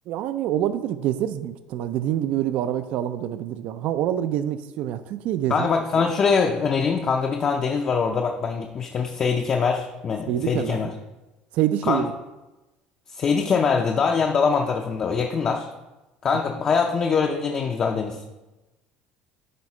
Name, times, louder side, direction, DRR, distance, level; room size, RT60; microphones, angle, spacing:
voice 1, 0.1-5.7 10.3-10.9 11.5-12.1, right 11 dB, 55° right, 11 dB, 0.4 m, -26 dB
voice 2, 5.5-10.9 11.9-12.0 13.1-15.7 16.2-18.2, left 5 dB, 30° left, 3 dB, 0.5 m, -23 dB
9.5 x 3.6 x 4.2 m, 1.1 s
cardioid pair, 160°, 3 cm